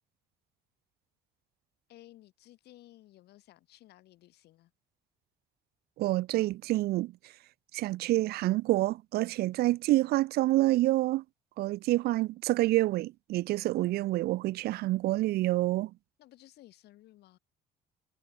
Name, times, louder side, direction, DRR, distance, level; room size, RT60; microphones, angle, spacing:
voice 1, 1.9-4.7 16.2-17.4, left 15 dB, 75° left, 3.8 m, -56 dB
voice 2, 6.0-7.1 7.7-11.2 11.6-15.9, right 17 dB, 70° right, 0.4 m, -27 dB
cardioid pair, 110°, 17 cm